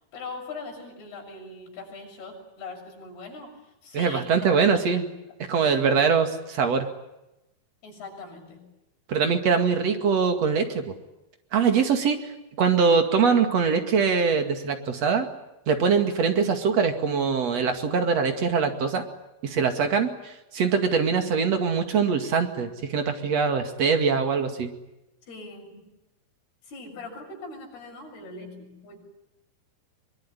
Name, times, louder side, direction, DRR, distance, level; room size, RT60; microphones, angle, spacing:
voice 1, 0.0-5.1 5.6-6.1 7.8-8.7 25.3-25.9 26.6-29.0, left 3 dB, 85° left, 0 dB, 8.8 m, -41 dB
voice 2, 3.9-5.1 5.5-6.9 9.1-10.9 11.5-12.2 12.6-15.3 15.7-19.0 19.4-24.7, right 5 dB, 45° right, 6 dB, 3.0 m, -23 dB
24.0 x 22.5 x 9.9 m, 0.93 s
omnidirectional pair, 4.5 m